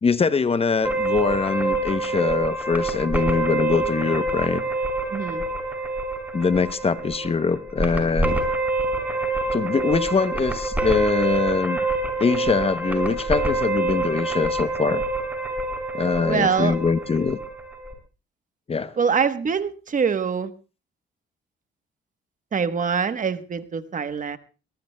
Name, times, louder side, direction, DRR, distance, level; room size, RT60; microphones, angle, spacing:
voice 1, 0.0-4.6 6.3-8.4 9.5-11.8 12.2-15.0 15.9-17.4 18.7-19.0, left 5 dB, 30° left, 14 dB, 0.7 m, -23 dB
sound 1, 0.8-17.9, right 2 dB, 10° right, 5.6 m, -26 dB
voice 2, 5.1-5.5 16.3-16.8 19.0-20.5 22.5-24.4, right 6 dB, 40° right, 11 dB, 1.1 m, -24 dB
22.0 x 19.5 x 2.2 m, 0.34 s
cardioid pair, 90°, 20 cm